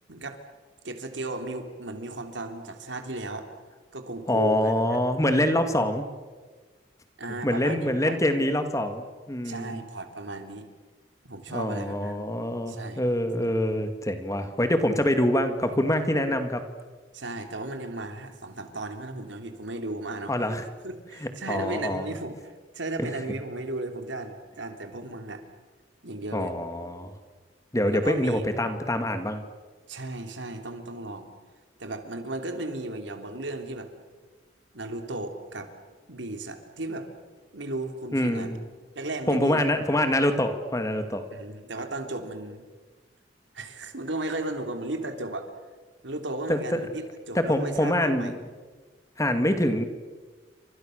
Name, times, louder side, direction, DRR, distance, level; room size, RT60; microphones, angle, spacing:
voice 1, 0.8-3.5 3.9-5.0 7.2-8.2 9.4-10.7 11.2-12.2 12.7-13.0 17.1-20.5 20.8-25.4 26.0-26.5 27.9-28.5 29.9-31.3 31.8-33.9 34.7-35.7 36.1-37.1 37.5-38.5 39.0-39.7 41.3-42.7 43.5-45.5 46.0-48.3, right 2 dB, 80° right, 6 dB, 3.4 m, -35 dB
voice 2, 4.3-6.0 7.4-9.8 11.5-16.6 20.3-20.6 21.5-22.1 23.0-23.2 26.3-27.1 27.7-29.4 38.1-38.6 39.3-41.3 46.5-46.8 47.4-48.3 49.2-49.8, left 1 dB, 15° left, 8 dB, 2.1 m, -25 dB
29.5 x 26.0 x 6.6 m, 1.4 s
head